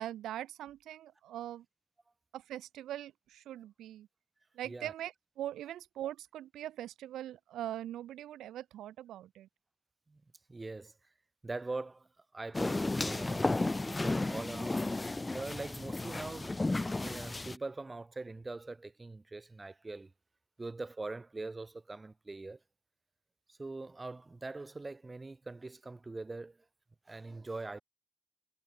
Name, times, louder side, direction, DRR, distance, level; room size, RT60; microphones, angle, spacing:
voice 1, 0.0-1.6 2.3-4.1 4.5-9.5, right 12 dB, 85° right, 0.8 m, -42 dB
voice 2, 10.5-10.9 11.4-12.1 12.3-16.6 17.0-20.1 20.6-22.6 23.5-26.6 27.0-27.8, right 3 dB, 20° right, 6.8 m, -42 dB
sound 1, 12.5-17.6, left 2 dB, 15° left, 0.6 m, -33 dB
cardioid pair, 115°, 0 cm